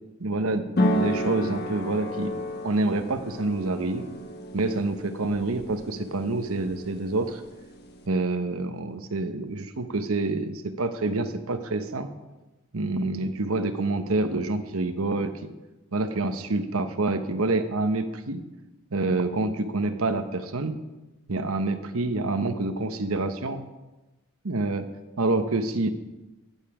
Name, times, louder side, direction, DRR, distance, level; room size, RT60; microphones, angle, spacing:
voice 1, 0.2-2.3 2.6-4.1 4.5-7.4 8.1-12.1 12.7-15.3 15.9-18.4 18.9-20.8 21.3-23.7 24.4-24.9 25.2-25.9, right 2 dB, 85° right, 9 dB, 1.0 m, -27 dB
sound 1, 0.8-8.1, equal, 50° left, 1.4 m, -32 dB
14.5 x 9.1 x 4.9 m, 1.1 s
head